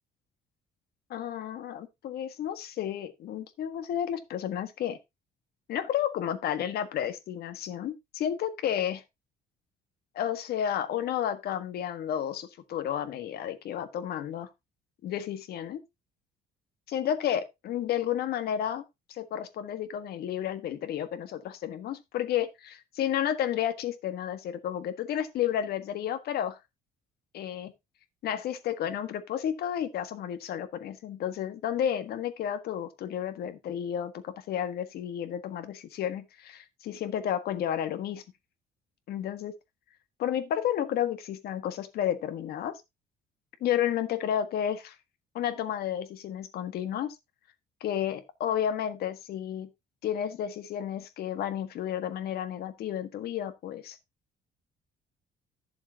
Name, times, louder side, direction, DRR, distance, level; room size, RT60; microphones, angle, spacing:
voice 1, 1.1-5.0 5.7-9.0 10.1-14.5 15.0-15.8 16.9-18.8 19.1-26.6 27.3-27.7 28.2-38.2 39.1-39.5 40.2-42.7 43.6-44.9 45.3-47.1 47.8-49.7 50.0-54.0, left 10 dB, 70° left, 1.6 m, -31 dB
11.5 x 7.1 x 2.8 m
cardioid pair, 110°, 17 cm